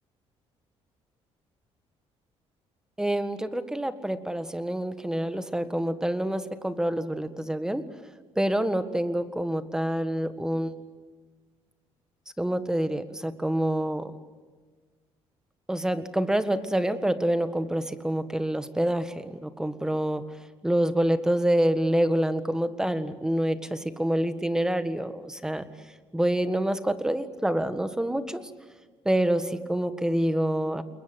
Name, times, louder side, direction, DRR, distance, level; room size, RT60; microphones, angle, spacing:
voice 1, 3.0-7.8 8.4-10.7 12.4-14.1 15.7-20.2 20.6-25.6 26.1-28.4 29.0-30.8, right 1 dB, 5° right, 11 dB, 1.6 m, -27 dB
29.5 x 21.5 x 7.9 m, 1.4 s
cardioid pair, 120°, 11 cm